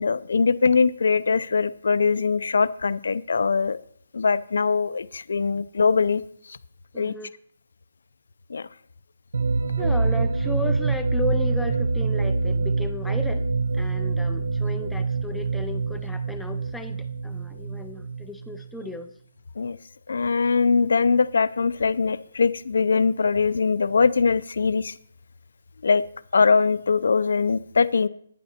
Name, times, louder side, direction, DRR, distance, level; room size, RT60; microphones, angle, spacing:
voice 1, 0.0-3.8 4.1-6.2 6.5-6.6 7.0-7.1 8.5-8.7 19.6-19.8 20.1-24.9 25.8-26.0 26.3-28.1, left 5 dB, 60° left, 16 dB, 0.5 m, -22 dB
voice 2, 6.9-7.3 9.8-13.5 13.7-19.1, left 1 dB, ahead, 5 dB, 0.4 m, -35 dB
sound 1, 9.3-19.0, right 3 dB, 85° right, 1.0 m, -25 dB
11.5 x 10.0 x 4.3 m, 0.66 s
hypercardioid pair, 175°, 0 cm